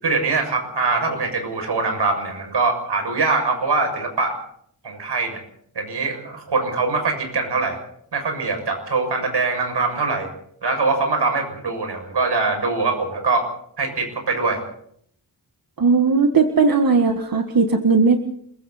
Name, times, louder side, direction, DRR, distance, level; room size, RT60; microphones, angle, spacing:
voice 1, 0.0-4.3 4.8-5.4 5.8-7.8 8.1-10.3 10.6-13.4 13.8-14.6, right 3 dB, 85° right, 4 dB, 7.0 m, -23 dB
voice 2, 15.8-18.2, right 4 dB, 55° right, 4 dB, 1.8 m, -17 dB
29.0 x 22.5 x 4.3 m, 0.67 s
wide cardioid pair, 120°, 40 cm